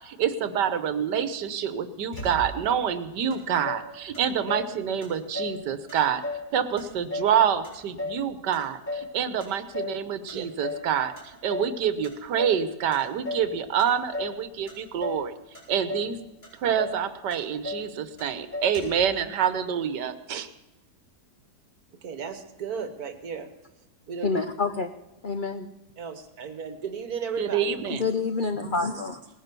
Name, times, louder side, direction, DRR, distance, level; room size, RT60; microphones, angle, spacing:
voice 1, 0.0-6.2 6.5-15.3 15.7-16.2 16.6-20.5 27.4-28.0, right 8 dB, 85° right, 12 dB, 1.6 m, -27 dB
Motor vehicle (road), 2.1-2.8 3.3-3.4 3.6-4.7 5.0-5.6 5.9-6.5 6.8-8.2 8.5-9.1 9.4-10.0 10.3-10.9 11.2-11.7 12.0-12.6 12.9-13.5 13.8-14.4 14.7-15.3 15.5-16.1 16.4-16.5 16.8-17.0 17.3-17.9 18.2-18.3 18.5-19.1, left 2 dB, 25° left, 5.3 m, -35 dB
voice 2, 21.9-23.5 24.1-24.5 26.0-27.8, right 6 dB, 65° right, 9 dB, 1.8 m, -35 dB
voice 3, 24.2-24.9 25.2-25.7 27.9-29.2, left 4 dB, 60° left, 9 dB, 0.5 m, -27 dB
18.5 x 10.5 x 6.8 m, 1.0 s
omnidirectional pair, 1.8 m